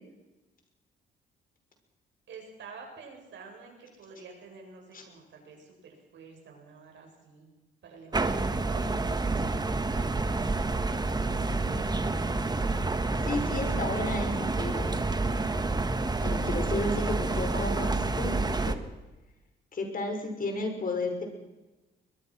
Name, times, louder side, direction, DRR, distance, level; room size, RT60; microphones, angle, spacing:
voice 1, 2.3-7.5 7.8-10.1, right 4 dB, 70° right, 1 dB, 7.8 m, -49 dB
sound 1, 8.1-18.8, right 3 dB, 20° right, 1.6 m, -29 dB
voice 2, 11.4-12.4 13.2-15.0 16.2-18.8 19.7-21.2, left 2 dB, 45° left, 4 dB, 6.0 m, -33 dB
22.0 x 21.5 x 6.0 m, 1.1 s
cardioid pair, 90°, 20 cm